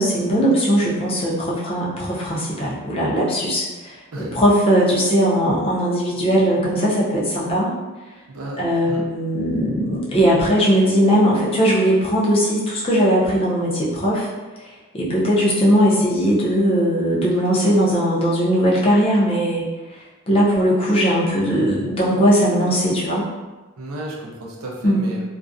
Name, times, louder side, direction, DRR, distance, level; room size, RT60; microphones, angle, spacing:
voice 1, 0.0-7.7 8.6-14.3 14.9-19.7 20.3-23.3 24.8-25.2, equal, 25° left, -5 dB, 0.5 m, -19 dB
voice 2, 8.3-9.1 23.8-25.2, right 1 dB, 80° right, -2 dB, 0.5 m, -33 dB
2.4 x 2.1 x 2.5 m, 1.2 s
head